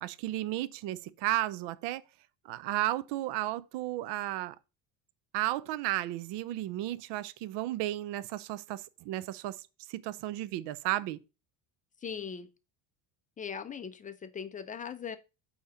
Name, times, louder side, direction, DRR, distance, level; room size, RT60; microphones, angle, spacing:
voice 1, 0.0-2.0 2.5-4.5 5.3-9.6 9.9-11.2, right 15 dB, 65° right, 0.6 m, -33 dB
voice 2, 12.0-12.5 13.4-15.2, left 7 dB, 20° left, 0.3 m, -39 dB
8.5 x 2.9 x 5.5 m
cardioid pair, 140°, 44 cm